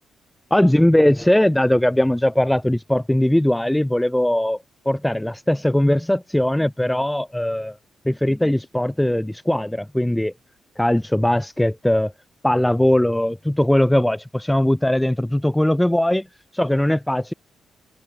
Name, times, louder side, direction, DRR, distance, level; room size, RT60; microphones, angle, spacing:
voice 1, 0.5-4.6 4.8-7.8 8.0-10.3 10.8-12.1 12.4-16.3 16.5-17.3, left 1 dB, 10° left, 1.2 m, -19 dB
hypercardioid pair, 40°, 0 cm